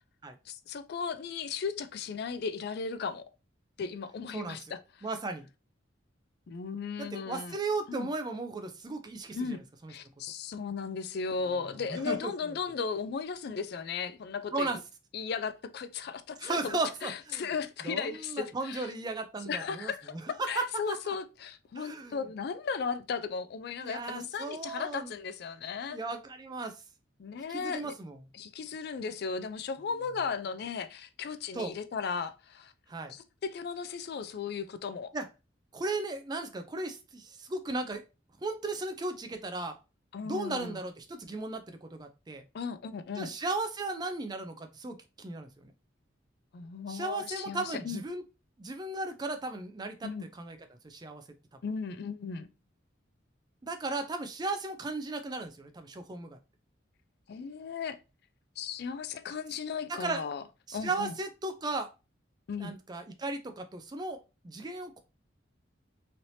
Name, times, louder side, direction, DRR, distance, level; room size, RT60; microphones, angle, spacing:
voice 1, 0.5-3.3 3.8-4.8 6.5-7.6 7.9-8.1 9.3-9.6 9.9-14.7 15.1-18.9 19.4-20.1 20.5-26.0 27.2-27.9 28.3-32.7 33.1-35.1 40.1-40.8 42.5-43.3 46.5-48.0 50.0-50.3 51.6-52.5 57.3-58.0 58.6-60.4 60.7-61.1 62.5-62.7, left 5 dB, 55° left, 0.3 m, -36 dB
voice 2, 5.0-5.5 7.0-9.6 9.8-9.9 11.9-12.3 14.5-14.8 16.4-17.5 17.8-19.9 20.4-21.1 21.8-22.2 23.8-25.1 25.9-26.8 27.5-28.2 31.5-31.7 32.9-33.1 35.1-35.3 35.7-38.0 38.4-39.8 40.2-42.4 43.2-45.7 46.9-48.2 48.6-50.6 50.8-51.2 53.6-56.4 59.9-60.2 60.7-61.9 62.6-65.0, right 3 dB, 20° right, 0.4 m, -36 dB
3.2 x 2.8 x 2.7 m
head